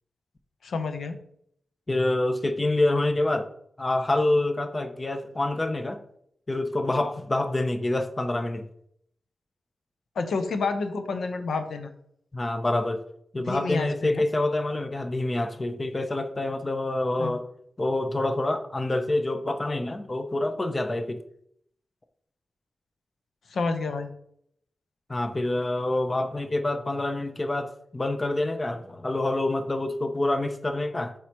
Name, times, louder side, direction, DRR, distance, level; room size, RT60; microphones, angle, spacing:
voice 1, 0.6-1.2 10.2-11.9 13.5-14.2 17.2-17.3 23.5-24.1, left 4 dB, 90° left, 7 dB, 0.7 m, -29 dB
voice 2, 1.9-3.5 3.8-6.0 6.5-8.7 12.3-13.0 13.3-17.4 17.8-21.2 25.1-31.1, left 2 dB, 20° left, 8 dB, 0.5 m, -27 dB
7.6 x 4.7 x 2.9 m, 0.69 s
wide cardioid pair, 165°, 0 cm